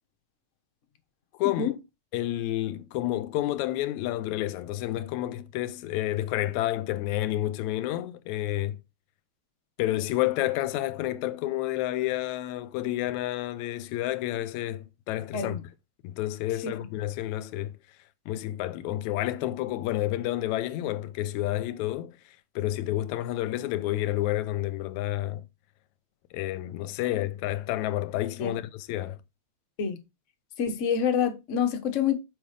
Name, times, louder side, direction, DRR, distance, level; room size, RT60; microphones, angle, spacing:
voice 1, 1.4-1.8 2.1-8.8 9.8-15.6 16.0-17.8 18.3-22.1 22.6-25.4 26.3-29.2, left 14 dB, 90° left, 2.0 m, -30 dB
voice 2, 30.6-32.2, left 7 dB, 70° left, 0.7 m, -27 dB
6.2 x 5.4 x 5.0 m
omnidirectional pair, 3.3 m